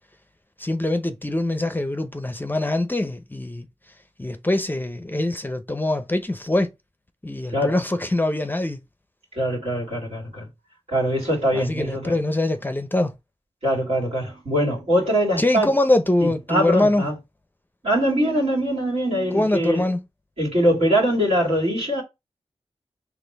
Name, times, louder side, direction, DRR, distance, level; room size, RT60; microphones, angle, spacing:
voice 1, 0.6-3.7 4.2-6.7 7.2-8.8 11.5-13.1 15.4-17.0 19.3-20.0, left 1 dB, 15° left, 0.6 m, -23 dB
voice 2, 9.3-10.5 10.9-12.2 13.6-15.7 16.2-17.1 17.8-19.9 20.4-22.0, equal, 70° right, 2.3 m, -22 dB
4.3 x 2.9 x 3.3 m
cardioid pair, 50°, 11 cm